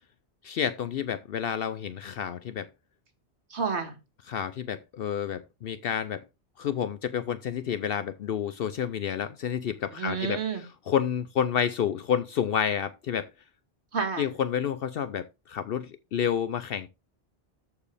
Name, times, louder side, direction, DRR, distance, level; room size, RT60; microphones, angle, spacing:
voice 1, 0.4-2.7 4.3-6.2 6.6-13.3 14.2-16.9, left 8 dB, 65° left, 0.7 m, -30 dB
voice 2, 3.5-3.9 9.9-10.6 13.9-14.3, right 5 dB, 75° right, 1.9 m, -30 dB
13.5 x 4.8 x 3.3 m
omnidirectional pair, 1.1 m